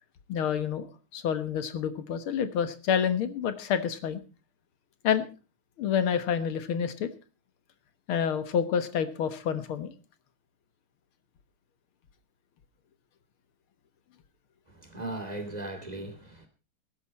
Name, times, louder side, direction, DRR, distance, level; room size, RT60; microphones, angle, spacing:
voice 1, 0.3-4.2 5.0-5.3 5.8-7.1 8.1-9.9, left 8 dB, 85° left, 2.2 m, -28 dB
voice 2, 14.8-16.5, right 2 dB, 20° right, 2.6 m, -37 dB
19.5 x 11.0 x 4.2 m
omnidirectional pair, 2.3 m